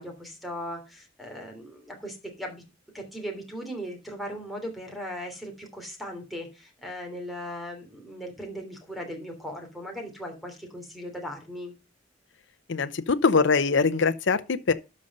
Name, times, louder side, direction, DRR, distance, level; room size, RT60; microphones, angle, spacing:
voice 1, 0.0-2.6 2.9-11.7, equal, ahead, 3.1 m, -38 dB
voice 2, 12.7-14.7, left 4 dB, 65° left, 0.7 m, -23 dB
12.5 x 5.3 x 5.3 m
head